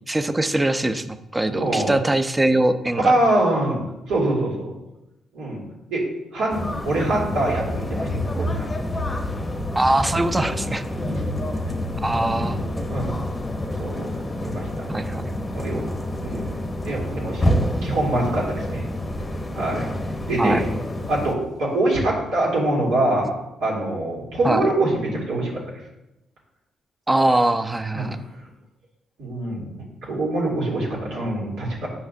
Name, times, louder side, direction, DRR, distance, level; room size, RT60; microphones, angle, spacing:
voice 1, 0.1-3.2 9.8-10.8 12.0-12.6 14.9-15.3 20.4-20.6 24.4-24.7 27.1-28.2, right 1 dB, 15° right, 10 dB, 0.5 m, -22 dB
voice 2, 1.5-2.0 3.0-4.7 5.3-6.0 6.3-8.7 11.0-11.3 12.4-12.6 12.9-13.2 13.8-14.7 15.5-15.8 16.2-16.5 16.8-17.5 17.8-18.9 19.5-19.9 20.3-20.7 21.1-23.3 23.6-25.5 27.9-28.2 29.2-31.9, right 1 dB, 85° right, -5 dB, 2.6 m, -24 dB
sound 1, 6.5-21.3, left 1 dB, 20° left, 0.8 m, -28 dB
8.5 x 5.8 x 2.7 m, 0.93 s
cardioid pair, 90°, 0 cm